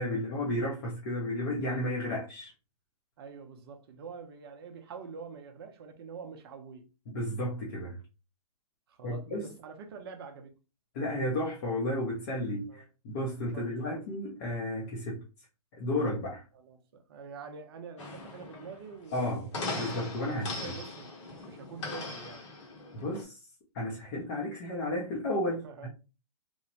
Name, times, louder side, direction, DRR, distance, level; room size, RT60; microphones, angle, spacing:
voice 1, 0.0-2.5 7.1-8.0 9.0-9.5 10.9-15.2 15.7-16.4 19.1-20.8 22.9-23.4 23.7-25.9, left 1 dB, 30° left, 0.6 m, -33 dB
voice 2, 3.2-6.9 8.9-10.5 12.7-12.9 13.5-13.9 16.5-19.5 20.3-21.2 21.5-22.5 25.6-25.9, right 5 dB, 40° right, 0.6 m, -46 dB
sound 1, 18.0-23.2, left 3 dB, 50° left, 0.9 m, -39 dB
3.0 x 2.1 x 2.7 m
hypercardioid pair, 150°, 20 cm